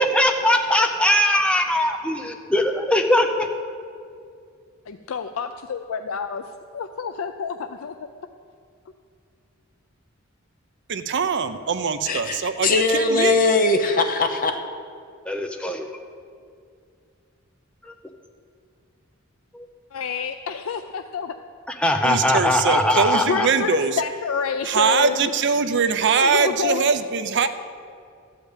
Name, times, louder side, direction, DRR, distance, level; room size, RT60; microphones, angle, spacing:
voice 1, 0.0-3.5 15.3-15.9 17.8-17.9 19.5-19.7 21.7-23.5, left 1 dB, 5° left, 4 dB, 0.6 m, -21 dB
voice 2, 4.9-6.4 6.7-7.9 19.9-21.3 23.3-25.3 26.2-26.9, left 6 dB, 75° left, 8 dB, 0.4 m, -28 dB
voice 3, 10.9-13.3 22.0-24.0 24.6-27.5, right 5 dB, 60° right, 10 dB, 0.6 m, -22 dB
voice 4, 12.1-14.6, left 3 dB, 40° left, 6 dB, 0.9 m, -20 dB
13.0 x 5.1 x 8.2 m, 2.3 s
head